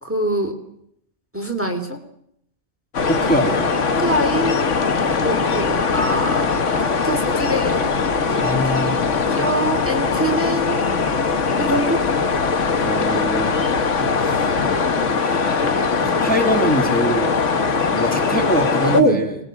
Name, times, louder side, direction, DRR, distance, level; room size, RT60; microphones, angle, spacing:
voice 1, 0.0-0.5 1.3-2.0 4.0-4.6 5.0-8.1 8.6-8.8 9.4-10.8 11.6-12.0 18.9-19.2, right 1 dB, 10° right, 4 dB, 2.8 m, -23 dB
sound 1, 2.9-19.0, left 4 dB, 90° left, 1.6 m, -20 dB
voice 2, 3.1-3.6 8.4-9.1 12.8-13.8 14.2-14.5 15.2-17.3 17.9-19.3, equal, 5° left, 2 dB, 2.8 m, -23 dB
25.5 x 20.5 x 7.7 m, 0.74 s
omnidirectional pair, 1.2 m